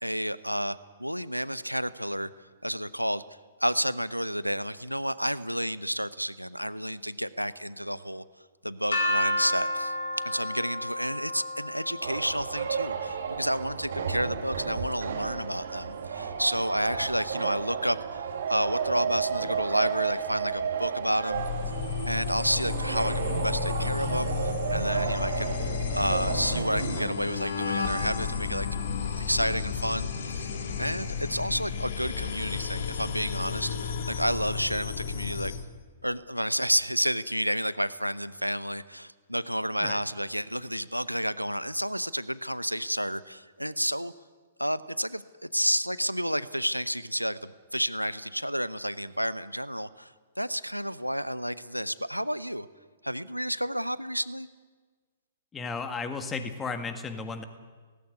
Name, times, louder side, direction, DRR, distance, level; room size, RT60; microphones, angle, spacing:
voice 1, 0.0-2.3 2.6-3.2 3.6-8.2 8.6-9.9 10.2-21.4 22.1-25.6 25.9-28.7 29.2-30.5 30.8-35.5 36.0-44.1 44.6-52.7 53.0-54.5, equal, 90° right, 16 dB, 0.7 m, -30 dB
sound 1, 8.9-14.8, left 1 dB, 70° left, 5.0 m, -32 dB
sound 2, 12.0-27.1, right 6 dB, 55° right, 2.2 m, -32 dB
sound 3, 21.3-35.6, left 7 dB, 50° left, 2.1 m, -32 dB
voice 2, 55.5-57.4, left 4 dB, 15° left, 8 dB, 1.8 m, -34 dB
18.0 x 15.5 x 9.7 m, 1.4 s
figure-of-eight pair, 115°, 0 cm